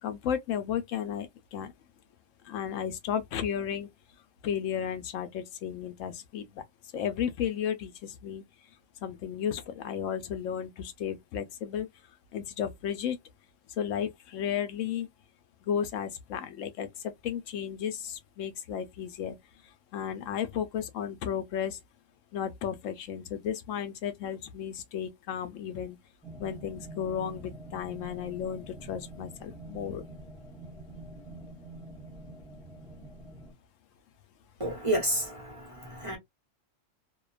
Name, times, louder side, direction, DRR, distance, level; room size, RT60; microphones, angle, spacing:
voice 1, 0.0-1.7 2.4-3.9 4.4-6.6 6.9-8.4 9.0-11.9 12.3-13.2 13.7-15.1 15.6-19.4 19.6-21.8 22.3-26.0 26.4-30.0, left 9 dB, 75° left, 0.9 m, -34 dB
sound 1, 26.2-33.5, right 1 dB, 5° left, 0.6 m, -46 dB
voice 2, 34.6-36.2, right 1 dB, 30° right, 0.8 m, -30 dB
2.8 x 2.2 x 2.3 m
omnidirectional pair, 1.4 m